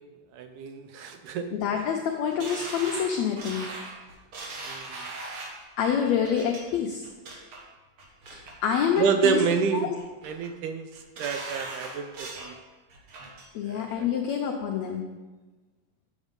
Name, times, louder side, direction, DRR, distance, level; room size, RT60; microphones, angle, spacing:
voice 1, 0.3-1.5 4.7-5.1 9.0-9.9 10.2-10.9 11.2-12.6 13.7-14.1, right 6 dB, 80° right, 7 dB, 1.9 m, -28 dB
voice 2, 1.5-3.7 5.8-7.0 8.3-9.9 13.5-15.0, left 7 dB, 90° left, 2 dB, 1.5 m, -27 dB
sound 1, 2.4-5.6 6.2-6.6 7.0-7.6 8.0-8.5 8.9-9.6 10.0-10.5 10.9-12.5 12.9-13.5 13.9-14.0, right 2 dB, 60° right, 2.2 m, -39 dB
8.0 x 7.3 x 5.2 m, 1.2 s
omnidirectional pair, 4.0 m